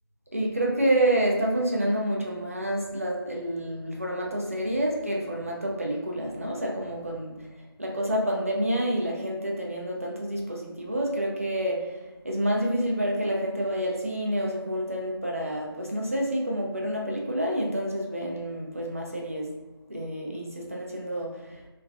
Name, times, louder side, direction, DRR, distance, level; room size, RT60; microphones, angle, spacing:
voice 1, 0.3-7.5 7.8-11.9 12.2-19.5 19.9-21.6, right 1 dB, 35° right, -2 dB, 0.4 m, -28 dB
3.0 x 2.3 x 2.3 m, 1.2 s
figure-of-eight pair, 170°, 13 cm